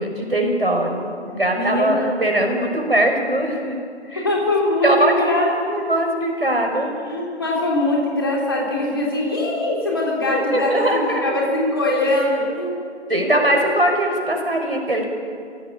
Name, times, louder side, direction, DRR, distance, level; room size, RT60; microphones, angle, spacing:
voice 1, 0.0-3.8 4.1-4.3 4.8-6.9 10.3-11.4 13.1-15.0, right 1 dB, 55° right, 2 dB, 5.4 m, -21 dB
voice 2, 1.5-2.1 4.1-5.5 6.8-12.8 13.3-13.7, left 1 dB, 20° left, -3 dB, 3.4 m, -22 dB
27.5 x 16.5 x 8.6 m, 2.2 s
figure-of-eight pair, 170°, 35 cm